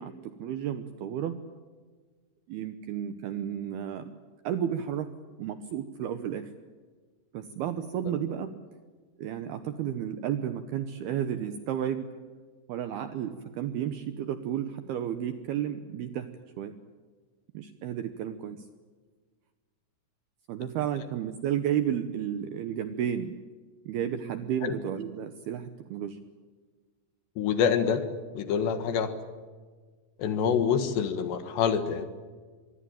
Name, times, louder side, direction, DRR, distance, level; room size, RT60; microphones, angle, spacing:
voice 1, 0.0-1.4 2.5-4.1 4.4-6.5 7.3-8.5 9.2-12.1 12.7-16.3 16.6-16.8 17.5-18.7 20.5-23.4 23.9-26.2 30.5-30.6, right 9 dB, 75° right, 10 dB, 2.4 m, -32 dB
voice 2, 27.4-28.0 28.3-29.1 30.2-32.1, left 7 dB, 65° left, 10 dB, 3.5 m, -26 dB
25.0 x 22.5 x 9.0 m, 1.5 s
omnidirectional pair, 5.7 m